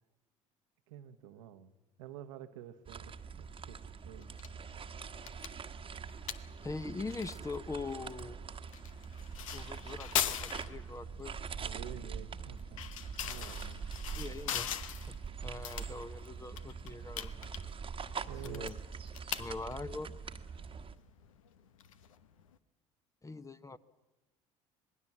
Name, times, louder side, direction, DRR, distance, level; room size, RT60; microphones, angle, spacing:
voice 1, 0.9-1.7 2.0-4.3 11.6-12.8 13.2-13.8 18.3-18.7, right 10 dB, 75° right, 9 dB, 1.2 m, -49 dB
sound 1, 2.8-20.9, right 6 dB, 30° right, 1.3 m, -44 dB
sound 2, 4.2-22.6, left 9 dB, 80° left, 1.0 m, -42 dB
voice 2, 6.6-8.5 9.5-11.3 14.2-14.7 15.1-15.2 15.4-17.3 18.4-18.8 19.4-20.1 23.2-23.8, left 3 dB, 20° left, 13 dB, 1.1 m, -42 dB
Motorcycle, 9.0-15.4, left 3 dB, 60° left, 7.9 m, -65 dB
26.0 x 20.0 x 7.4 m, 1.1 s
hypercardioid pair, 60°, 17 cm